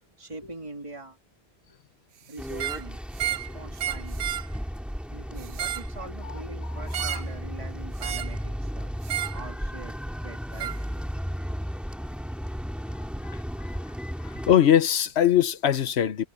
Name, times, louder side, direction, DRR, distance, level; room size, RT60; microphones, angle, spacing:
voice 1, 0.2-1.2 1.7-1.8 2.3-3.0 3.3-4.2 5.1-8.9 9.3-9.9 10.2-10.7, right 2 dB, 30° right, 2.6 m, -43 dB
sound 1, 2.4-14.6, equal, ahead, 2.3 m, -34 dB
sound 2, 2.5-2.8 3.2-3.5 3.8-4.5 5.4-5.9 6.9-7.3 8.0-8.4 9.0-9.4 10.6-10.8, right 12 dB, 85° right, 0.9 m, -31 dB
voice 2, 13.2-13.7 14.2-16.3, left 10 dB, 85° left, 1.1 m, -22 dB
omnidirectional pair, 1.1 m